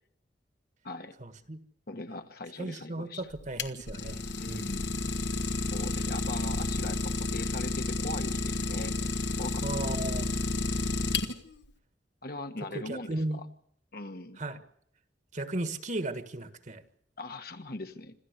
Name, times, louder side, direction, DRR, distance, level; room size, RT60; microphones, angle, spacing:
voice 1, 1.2-1.6 2.6-4.7 9.6-10.3 12.7-13.4 14.4-14.6 15.3-16.8, right 1 dB, 45° right, 10 dB, 1.5 m, -35 dB
voice 2, 1.9-3.2 4.4-5.0 5.7-8.9 9.4-9.9 12.2-13.4 13.9-14.4 17.2-18.1, left 2 dB, 60° left, 7 dB, 1.5 m, -40 dB
Idling, 3.3-11.6, left 2 dB, 80° left, 1.6 m, -31 dB
26.5 x 14.5 x 8.2 m, 0.68 s
head